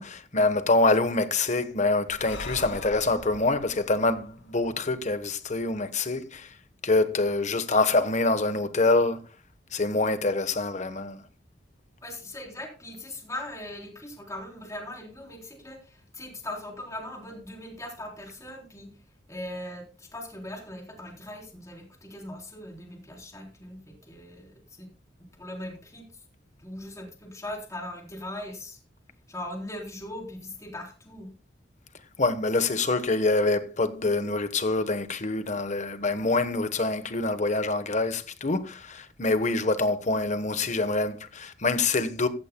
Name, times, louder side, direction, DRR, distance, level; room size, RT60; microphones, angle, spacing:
voice 1, 0.0-6.5 6.8-9.2 9.7-11.2 32.2-42.3, left 3 dB, 40° left, 1.2 m, -25 dB
Breathing, 2.1-5.6, left 2 dB, 85° left, 1.8 m, -43 dB
voice 2, 12.0-18.9 19.3-24.9 25.3-26.0 26.6-28.8 29.3-31.3, left 1 dB, 20° left, 3.7 m, -40 dB
15.0 x 14.5 x 2.3 m
head